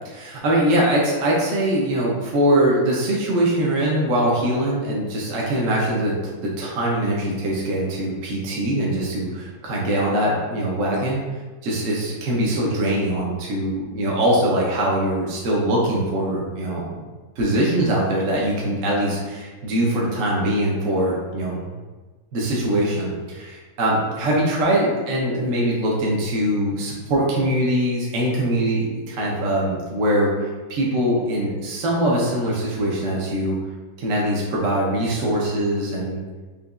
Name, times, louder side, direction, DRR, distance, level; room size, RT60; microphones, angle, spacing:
voice 1, 0.0-6.2 6.4-11.2 11.6-17.1 17.4-21.6 22.3-30.3 30.7-33.6 34.0-36.2, right 1 dB, 65° right, -4 dB, 1.0 m, -22 dB
5.2 x 2.8 x 2.3 m, 1.3 s
omnidirectional pair, 1.6 m